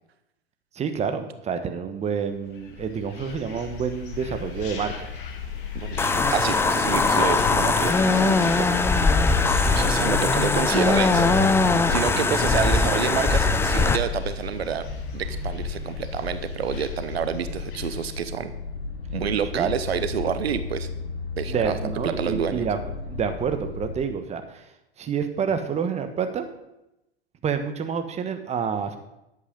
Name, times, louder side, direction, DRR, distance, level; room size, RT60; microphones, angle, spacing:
voice 1, 0.7-4.9 9.6-9.8 19.5-19.7 21.5-22.8 23.1-24.6 25.0-26.5 27.4-29.0, right 6 dB, 20° right, 7 dB, 1.2 m, -28 dB
sound 1, 2.5-18.2, left 6 dB, 55° left, 2.0 m, -34 dB
sound 2, 6.0-14.0, left 3 dB, 10° left, 0.5 m, -21 dB
voice 2, 6.3-8.8 9.7-11.4 11.9-14.9 15.1-18.5 19.1-20.9 21.4-22.7, right 8 dB, 75° right, 11 dB, 0.8 m, -28 dB
danish car, 11.1-24.0, left 4 dB, 90° left, 1.5 m, -34 dB
10.5 x 8.1 x 5.4 m, 0.88 s
hypercardioid pair, 100°, 31 cm